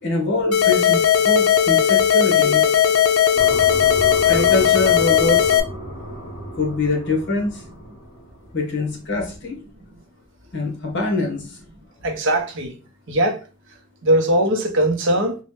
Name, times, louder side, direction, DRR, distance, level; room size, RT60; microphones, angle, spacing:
voice 1, 0.0-2.6 4.3-5.5 6.5-7.6 8.5-9.6 10.5-11.6, left 3 dB, 55° left, 1.0 m, -24 dB
sound 1, 0.5-5.6, left 9 dB, 90° left, 0.5 m, -17 dB
sound 2, 3.3-8.8, right 1 dB, 30° left, 1.6 m, -33 dB
voice 2, 12.0-12.7 13.1-13.4 14.0-15.4, right 1 dB, 60° right, 0.6 m, -20 dB
3.0 x 2.1 x 3.1 m
head